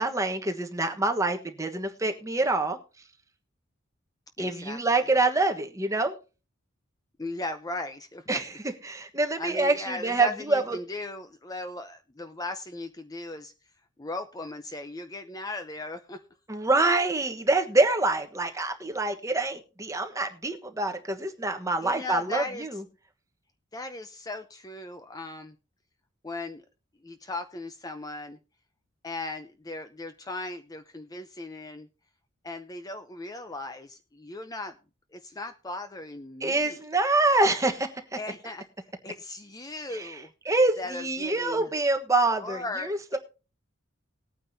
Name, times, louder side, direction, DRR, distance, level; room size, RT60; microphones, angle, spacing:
voice 1, 0.0-2.8 4.4-6.1 8.3-8.5 8.8-10.8 16.5-22.8 36.4-37.9 39.9-40.1 40.5-43.2, right 2 dB, 15° right, 5 dB, 1.2 m, -26 dB
voice 2, 4.4-4.8 7.2-8.4 9.4-13.5 14.0-16.2 21.8-22.8 23.7-25.6 26.2-26.6 27.0-28.4 29.0-31.9 32.4-34.8 35.1-36.8 38.2-38.6 39.0-40.3 40.8-41.7 42.4-43.2, left 2 dB, 20° left, 8 dB, 0.6 m, -37 dB
19.5 x 9.1 x 2.7 m, 0.32 s
head